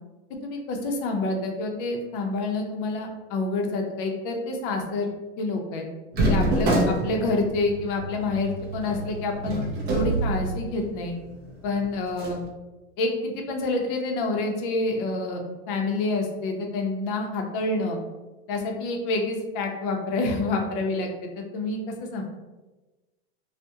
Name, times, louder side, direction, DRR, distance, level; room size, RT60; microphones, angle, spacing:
voice 1, 0.4-5.1 5.4-5.9 6.3-9.6 9.9-11.2 11.6-12.4 13.0-18.0 18.5-22.2, left 2 dB, 55° left, 2 dB, 0.6 m, -28 dB
sound 1, 6.1-11.0 11.4-11.5 12.1-12.4, right 1 dB, 30° right, 0.4 m, -26 dB
2.3 x 2.1 x 2.7 m, 1.2 s
supercardioid pair, 140°, 33 cm